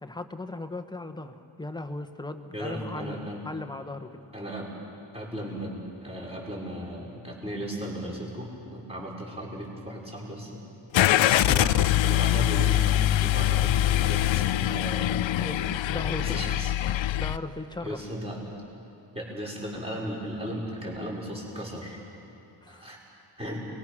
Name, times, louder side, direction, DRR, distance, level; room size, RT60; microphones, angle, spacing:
voice 1, 0.0-4.1 15.1-16.4 17.2-18.0 22.6-23.0, left 2 dB, 10° left, 7 dB, 1.0 m, -37 dB
voice 2, 2.5-3.4 4.3-4.7 5.1-10.6 11.4-15.1 16.1-16.7 17.8-18.4 19.1-22.0 22.7-23.0 23.4-23.7, equal, 15° right, -4 dB, 5.5 m, -36 dB
Car / Engine starting, 10.9-17.4, left 13 dB, 90° left, 0.6 m, -23 dB
30.0 x 21.0 x 6.2 m, 2.8 s
wide cardioid pair, 135°, 44 cm